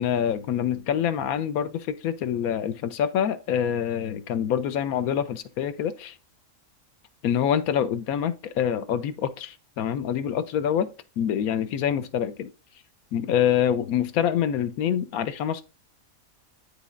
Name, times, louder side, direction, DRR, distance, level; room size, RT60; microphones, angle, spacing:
voice 1, 0.0-1.7 2.0-6.1 7.2-10.9 11.2-12.5 13.1-15.6, left 9 dB, 85° left, 1.1 m, -26 dB
10.5 x 4.1 x 2.5 m
omnidirectional pair, 1.5 m